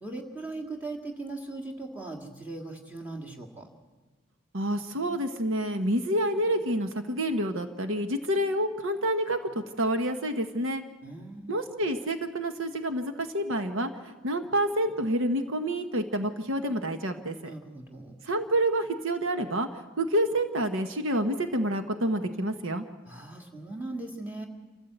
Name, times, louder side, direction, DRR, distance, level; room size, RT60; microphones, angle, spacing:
voice 1, 0.0-3.7 11.0-11.6 17.4-18.2 23.1-24.5, right 2 dB, 10° right, 1 dB, 2.0 m, -39 dB
voice 2, 4.5-10.8 11.5-17.5 18.2-22.8, right 1 dB, 75° right, 7 dB, 1.2 m, -28 dB
27.0 x 14.5 x 8.0 m, 1.3 s
head